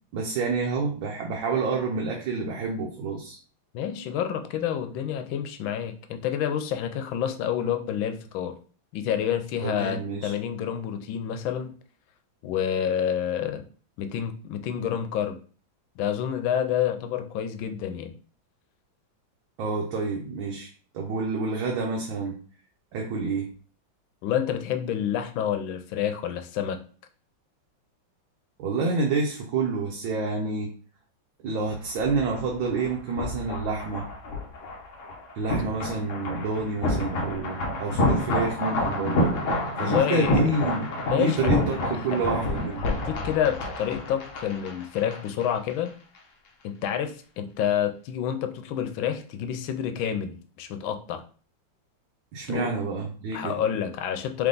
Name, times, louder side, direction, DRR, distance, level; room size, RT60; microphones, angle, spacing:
voice 1, 0.1-3.4 9.6-10.3 19.6-22.4 22.9-23.5 28.6-30.7 31.4-34.1 35.4-39.3 39.8-40.9 41.1-42.8 52.3-53.6, right 4 dB, 80° right, -1 dB, 1.5 m, -28 dB
voice 2, 3.7-8.5 8.9-11.8 12.4-13.6 14.0-15.4 16.0-18.1 24.2-26.8 39.8-40.5 41.1-41.5 42.1-42.2 42.8-45.9 46.6-51.2 52.5-52.7 53.3-54.5, left 9 dB, 85° left, 7 dB, 1.4 m, -28 dB
sound 1, 31.7-45.5 45.7-45.9, left 1 dB, 55° left, 0.9 m, -29 dB
3.5 x 3.5 x 3.8 m, 0.40 s
omnidirectional pair, 2.1 m